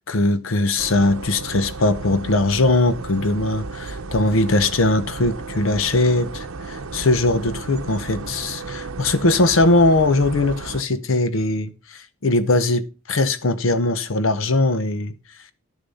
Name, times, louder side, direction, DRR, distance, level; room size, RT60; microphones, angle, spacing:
voice 1, 0.1-15.1, left 2 dB, 70° left, 0.8 m, -20 dB
sound 1, 0.8-10.8, right 3 dB, 80° right, 0.8 m, -34 dB
12.0 x 7.0 x 5.4 m
head